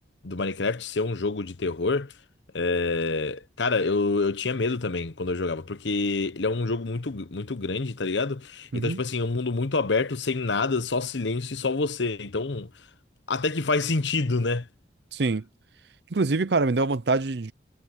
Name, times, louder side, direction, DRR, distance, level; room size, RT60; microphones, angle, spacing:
voice 1, 0.2-2.1 2.5-12.7 13.3-14.7, left 3 dB, 80° left, 1.0 m, -27 dB
voice 2, 15.1-15.4 16.1-17.5, right 3 dB, 70° right, 0.7 m, -24 dB
head